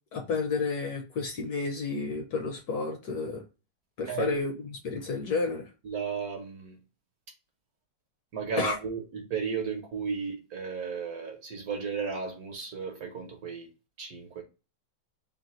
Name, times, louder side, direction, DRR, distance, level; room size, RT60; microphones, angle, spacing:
voice 1, 0.1-3.4 4.0-5.7 8.6-8.8, left 4 dB, 60° left, 1.1 m, -31 dB
voice 2, 5.8-6.8 8.3-13.7 14.0-14.4, right 5 dB, 60° right, 1.2 m, -34 dB
3.9 x 2.2 x 4.1 m
omnidirectional pair, 2.2 m